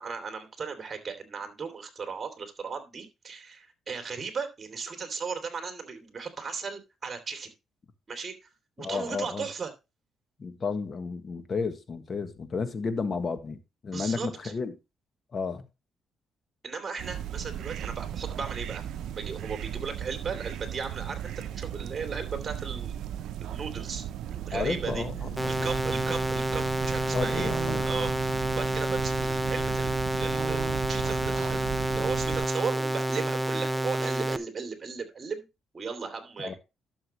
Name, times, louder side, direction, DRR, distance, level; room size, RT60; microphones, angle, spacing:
voice 1, 0.0-7.5 8.1-8.5 8.8-9.7 13.9-14.5 16.6-18.8 19.2-23.1 23.4-25.0 25.5-35.5 35.7-36.6, right 5 dB, 35° right, 2.9 m, -36 dB
voice 2, 8.8-9.5 10.4-13.6 13.8-14.7 15.3-15.7 24.5-25.7 27.1-28.1 36.4-36.5, left 4 dB, 40° left, 1.5 m, -32 dB
sound 1, 17.0-32.5, right 10 dB, 80° right, 0.6 m, -36 dB
sound 2, 25.4-34.4, right 1 dB, 5° right, 0.7 m, -29 dB
12.0 x 7.0 x 3.1 m
cardioid pair, 90°, 0 cm